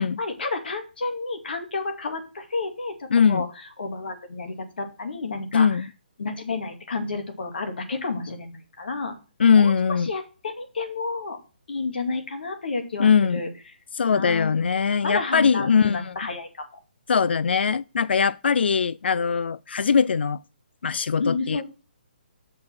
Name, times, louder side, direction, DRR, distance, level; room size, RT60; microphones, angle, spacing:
voice 1, 0.0-3.5 3.8-5.9 6.2-9.1 9.6-9.7 10.1-11.4 11.7-13.5 14.1-14.7 15.0-16.6 21.2-21.6, left 3 dB, 70° left, 2.4 m, -31 dB
voice 2, 3.1-3.5 5.5-5.9 9.4-10.1 13.0-13.4 13.9-16.2 17.1-20.4 20.8-21.6, left 6 dB, 85° left, 0.4 m, -21 dB
7.6 x 6.2 x 6.0 m
hypercardioid pair, 170°, 6 cm